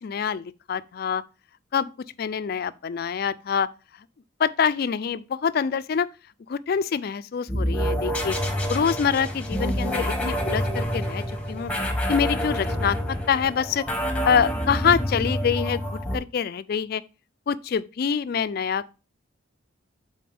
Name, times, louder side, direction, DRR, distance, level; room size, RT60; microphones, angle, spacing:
voice 1, 0.0-1.2 1.7-1.9 2.2-3.7 4.4-6.1 6.5-8.4 8.7-11.7 12.1-13.8 14.2-15.8 16.1-17.0 17.5-18.9, left 7 dB, 45° left, 0.3 m, -25 dB
sound 1, 7.5-16.2, equal, 5° left, 0.9 m, -27 dB
8.5 x 3.9 x 3.4 m
head